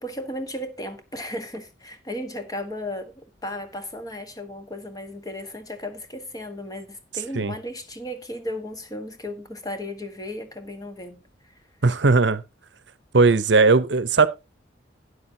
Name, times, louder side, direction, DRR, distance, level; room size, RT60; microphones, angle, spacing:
voice 1, 0.0-11.5, left 1 dB, 20° left, 1.3 m, -35 dB
voice 2, 11.8-12.4 13.1-14.3, right 3 dB, 70° right, 0.8 m, -18 dB
12.5 x 9.7 x 2.8 m
head